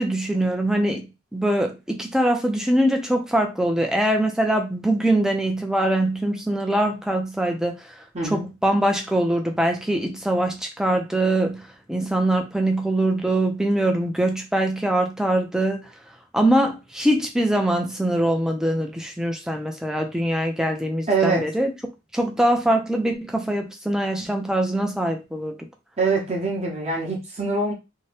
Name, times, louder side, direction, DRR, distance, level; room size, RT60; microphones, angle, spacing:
voice 1, 0.0-8.0 8.2-15.9 16.3-21.7 22.1-25.6, right 1 dB, 5° right, 0.5 m, -23 dB
voice 2, 8.1-8.5 21.1-21.4 26.0-27.7, right 3 dB, 35° right, 0.8 m, -24 dB
2.7 x 2.2 x 3.2 m
head